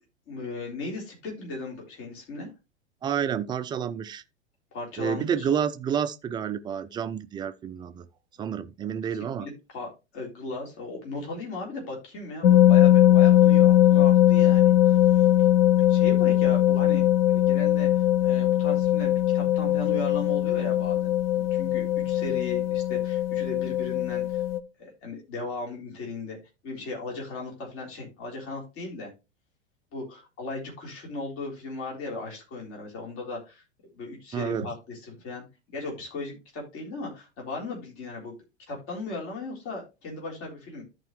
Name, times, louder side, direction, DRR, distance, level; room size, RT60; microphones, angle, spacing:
voice 1, 0.3-2.5 4.7-5.5 8.5-8.6 9.4-15.3 15.9-24.4 24.8-26.4 26.6-29.1 29.9-33.6 33.9-35.4 35.7-38.3 38.7-40.8, left 2 dB, 45° left, 3.9 m, -37 dB
voice 2, 3.0-4.2 5.0-8.1 8.4-9.5 34.3-34.7, right 8 dB, 15° right, 0.4 m, -29 dB
sound 1, 12.4-24.6, left 13 dB, 60° left, 0.8 m, -20 dB
13.5 x 4.7 x 3.1 m
figure-of-eight pair, 90°, 34 cm